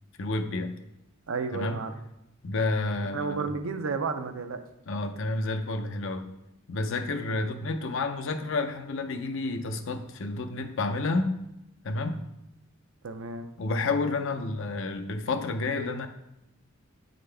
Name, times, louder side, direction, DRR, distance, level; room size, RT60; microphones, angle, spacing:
voice 1, 0.2-0.7 1.5-1.8 2.4-3.5 4.9-6.3 6.7-11.4 11.8-12.2 13.6-16.1, left 3 dB, 65° left, 7 dB, 0.6 m, -30 dB
voice 2, 1.3-1.9 3.1-4.6 13.0-13.5, right 4 dB, 75° right, 8 dB, 0.5 m, -32 dB
8.6 x 3.9 x 3.3 m, 0.88 s
head